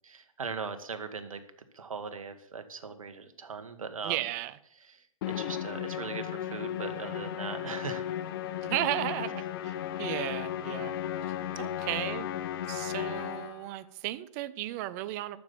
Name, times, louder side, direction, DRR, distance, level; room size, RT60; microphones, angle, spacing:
voice 1, 0.0-1.4 1.7-4.2 4.9-8.0, right 5 dB, 75° right, 9 dB, 1.6 m, -39 dB
voice 2, 4.0-4.6 8.6-11.0 11.2-12.4 12.7-15.4, right 15 dB, 30° right, 16 dB, 0.6 m, -35 dB
Musical instrument, 5.2-13.7, left 11 dB, 40° left, 0.8 m, -35 dB
12.0 x 7.0 x 6.9 m, 0.69 s
hypercardioid pair, 130°, 18 cm